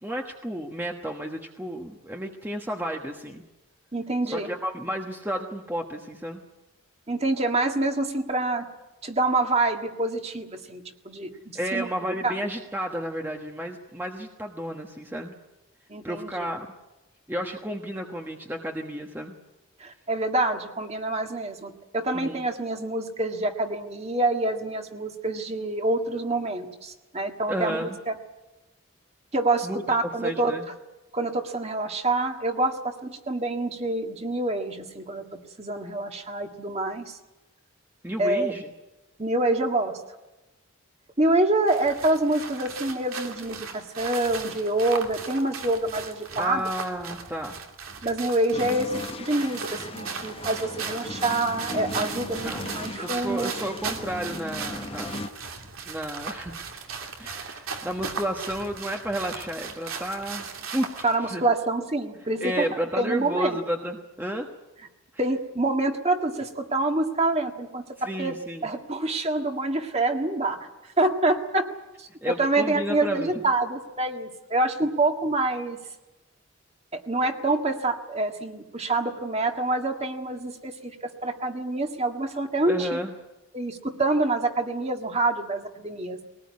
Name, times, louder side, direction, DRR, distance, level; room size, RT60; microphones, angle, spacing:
voice 1, 0.0-3.4 4.2-6.4 11.5-15.3 16.0-16.7 17.3-19.3 22.1-22.4 27.5-28.0 29.6-29.8 30.2-30.7 38.0-38.7 46.4-47.6 52.4-52.6 52.9-55.1 55.9-56.6 57.2-61.4 62.4-64.5 68.0-68.7 72.2-73.4 82.7-83.1, equal, 10° right, 2 dB, 1.2 m, -32 dB
voice 2, 3.9-4.5 7.1-8.7 9.0-12.4 15.9-16.5 19.8-28.1 29.3-30.5 31.1-35.2 35.6-37.1 38.2-38.5 39.2-40.0 41.2-46.7 48.0-53.5 61.0-62.7 63.0-63.6 65.2-68.4 68.6-70.7 71.0-71.7 72.0-75.8 76.9-83.0 83.5-86.2, right 2 dB, 30° right, 4 dB, 1.7 m, -26 dB
sound 1, 41.7-61.2, right 5 dB, 80° right, 2.8 m, -37 dB
sound 2, 48.5-55.3, left 2 dB, 25° left, 0.8 m, -38 dB
21.5 x 19.0 x 9.6 m, 1.0 s
head